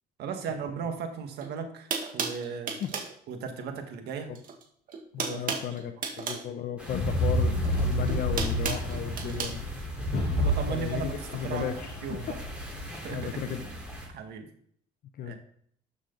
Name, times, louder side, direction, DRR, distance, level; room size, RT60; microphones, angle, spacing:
voice 1, 0.2-2.8 3.3-4.3 5.2-5.7 9.2-9.4 10.3-11.7 12.0-12.4 13.0-13.5 14.1-14.5 15.2-15.4, right 6 dB, 75° right, 5 dB, 1.8 m, -36 dB
sound 1, 1.4-1.5 1.9-3.1 4.3-4.6 4.9-6.5 7.6-9.5, right 5 dB, 55° right, 1.9 m, -33 dB
voice 2, 5.1-9.6 10.6-11.9 12.3-12.6 13.1-13.6 15.2-15.3, left 9 dB, 60° left, 6 dB, 0.9 m, -35 dB
sound 2, 6.8-14.1, equal, 5° right, 3.8 m, -42 dB
sound 3, 6.9-12.8, equal, 35° left, 4.6 m, -29 dB
12.5 x 6.4 x 4.0 m, 0.63 s
cardioid pair, 110°, 17 cm